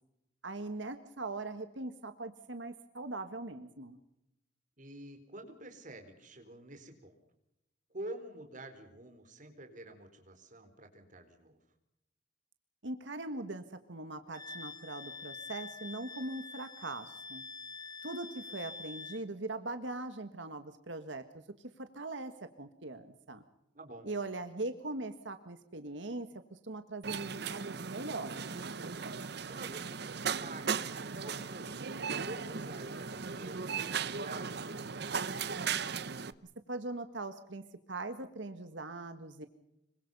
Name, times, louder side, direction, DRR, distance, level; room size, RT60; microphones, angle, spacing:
voice 1, 0.4-4.0 12.8-17.4 18.0-21.4 21.8-22.3 22.6-23.4 24.0-28.5 36.7-37.6 37.9-39.5, right 2 dB, 90° right, 8 dB, 1.7 m, -41 dB
voice 2, 4.8-7.1 7.9-11.6 23.7-24.1 29.5-29.9 30.4-31.7 32.2-35.7, right 1 dB, 45° right, 6 dB, 4.2 m, -48 dB
Wind instrument woodwind instrument, 14.3-19.2, left 4 dB, 20° left, 1.0 m, -46 dB
sound 1, 27.0-36.3, right 6 dB, 60° right, 0.9 m, -37 dB
26.0 x 24.0 x 5.5 m, 0.84 s
head